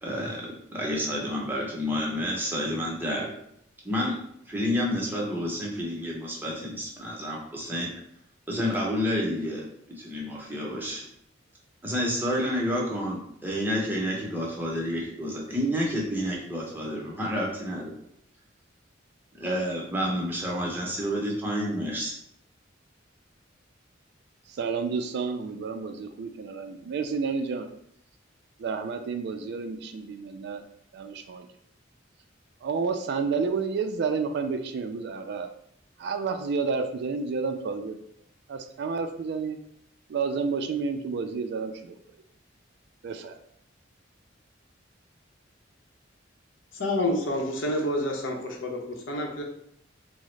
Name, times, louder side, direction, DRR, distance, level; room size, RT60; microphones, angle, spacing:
voice 1, 0.0-3.4 3.8-4.2 4.5-7.9 8.5-9.6 10.0-11.1 11.8-17.9 19.3-22.1, equal, 10° right, -3 dB, 0.7 m, -29 dB
voice 2, 24.5-27.7 28.6-30.6 30.9-31.5 32.6-35.5 36.0-38.0 38.5-39.6 40.1-42.0 43.0-43.4, right 5 dB, 60° right, 7 dB, 0.3 m, -30 dB
voice 3, 46.8-48.8 49.1-49.4, left 1 dB, 80° left, 1 dB, 0.7 m, -28 dB
3.6 x 2.0 x 3.1 m, 0.72 s
head